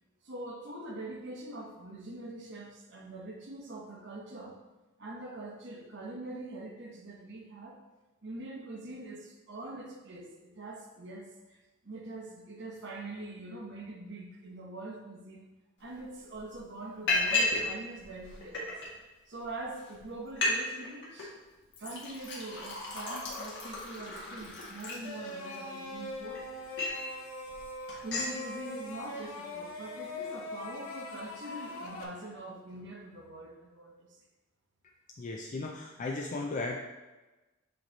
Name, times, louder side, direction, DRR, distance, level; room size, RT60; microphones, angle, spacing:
voice 1, 0.2-4.6 5.0-7.8 8.2-15.5 15.8-18.7 19.3-21.4 21.8-26.4 27.9-34.2, right 2 dB, 55° right, 1 dB, 0.9 m, -43 dB
Liquid, 15.9-16.0 16.3-16.6 17.1-17.7 18.0-18.9 19.5-19.6 19.9-20.0 20.3-20.6 20.8-21.3 21.7-25.5 26.1-27.1 27.5-27.6 27.9-28.3, left 2 dB, 55° left, 1.6 m, -33 dB
sound 1, 25.0-32.0, left 2 dB, 75° left, 0.8 m, -41 dB
voice 2, 35.2-36.8, left 3 dB, 35° left, 0 dB, 0.4 m, -35 dB
7.8 x 3.0 x 3.9 m, 1.1 s
head